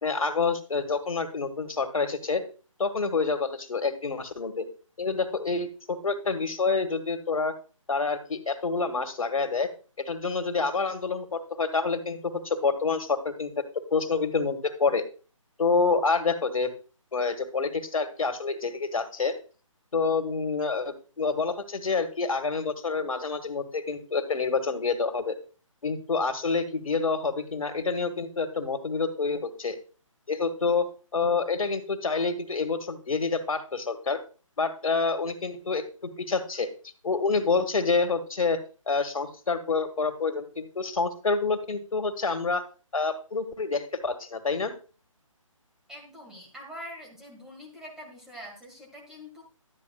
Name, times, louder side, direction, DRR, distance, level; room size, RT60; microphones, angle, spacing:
voice 1, 0.0-2.4 2.8-4.7 5.0-7.5 7.9-9.7 10.0-13.6 13.9-15.0 15.6-16.7 17.1-19.4 19.9-25.4 25.8-29.8 30.3-34.2 34.6-35.8 36.2-36.7 37.0-38.6 38.9-42.6 42.9-44.7, left 4 dB, 80° left, 8 dB, 1.8 m, -27 dB
voice 2, 45.9-49.4, equal, 5° right, -2 dB, 1.9 m, -44 dB
12.5 x 9.1 x 2.4 m, 0.36 s
hypercardioid pair, 160°, 17 cm